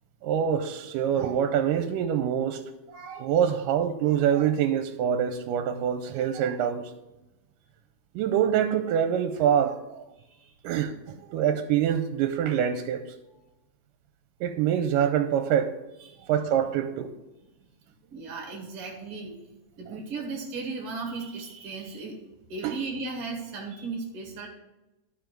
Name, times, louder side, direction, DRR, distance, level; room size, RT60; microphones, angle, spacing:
voice 1, 0.2-2.6 2.9-6.9 8.2-10.0 10.6-10.9 11.3-13.0 14.4-15.8 16.3-17.1 22.6-22.7, right 9 dB, 85° right, 8 dB, 2.2 m, -25 dB
voice 2, 18.1-19.4 19.8-22.2 22.5-24.5, right 4 dB, 50° right, -1 dB, 2.0 m, -36 dB
12.5 x 4.9 x 4.5 m, 0.98 s
omnidirectional pair, 3.8 m